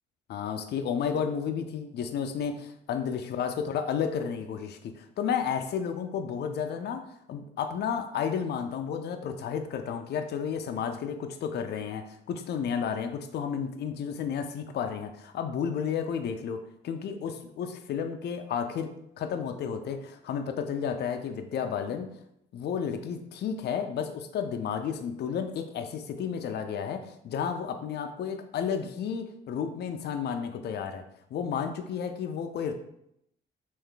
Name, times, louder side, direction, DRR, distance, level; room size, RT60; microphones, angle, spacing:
voice 1, 0.3-16.6 16.8-18.9 19.2-22.1 22.5-31.0 31.3-32.7, left 7 dB, 55° left, 6 dB, 0.4 m, -32 dB
3.3 x 2.6 x 3.8 m, 0.76 s
cardioid pair, 90°, 20 cm